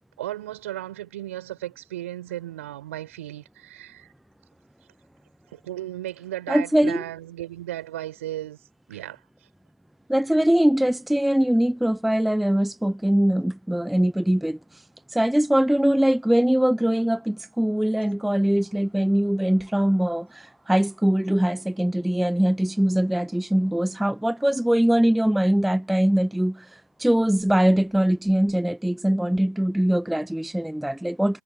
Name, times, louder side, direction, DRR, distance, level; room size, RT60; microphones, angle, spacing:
voice 1, 0.2-4.1 5.5-8.6 8.9-9.2, right 14 dB, 55° right, 5.2 m, -35 dB
voice 2, 6.5-7.0 10.1-14.8 15.1-31.4, right 1 dB, ahead, 0.5 m, -22 dB
hypercardioid pair, 150°, 9 cm